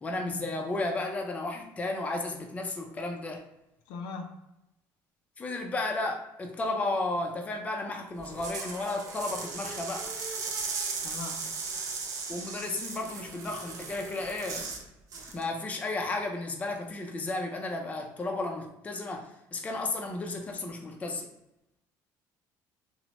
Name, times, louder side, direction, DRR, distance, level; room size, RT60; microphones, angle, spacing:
voice 1, 0.0-3.4 5.4-10.1 12.3-14.7 15.3-21.3, left 2 dB, 20° left, 2 dB, 0.4 m, -33 dB
voice 2, 3.9-4.4 11.0-11.5, left 4 dB, 80° left, 4 dB, 0.4 m, -39 dB
sound 1, 8.2-14.8 15.1-15.4, right 4 dB, 50° right, 0.5 m, -37 dB
2.8 x 2.1 x 3.0 m, 0.88 s
cardioid pair, 130°, 8 cm